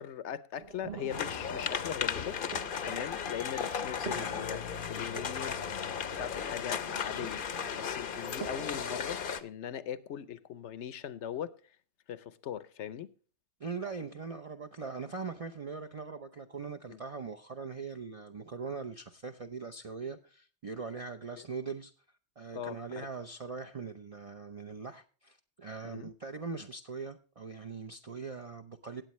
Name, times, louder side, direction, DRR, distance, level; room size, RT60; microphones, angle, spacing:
voice 1, 0.0-2.4 2.8-11.8 12.1-13.1 16.9-17.0 21.4-21.5 22.5-23.1 25.8-26.1, left 9 dB, 75° left, 1.0 m, -40 dB
sound 1, 0.6-9.2, right 8 dB, 60° right, 1.1 m, -48 dB
sound 2, 1.1-9.4, left 7 dB, 55° left, 0.8 m, -35 dB
voice 2, 13.6-21.9 22.4-29.0, right 5 dB, 35° right, 0.6 m, -41 dB
18.0 x 8.2 x 3.1 m
omnidirectional pair, 1.2 m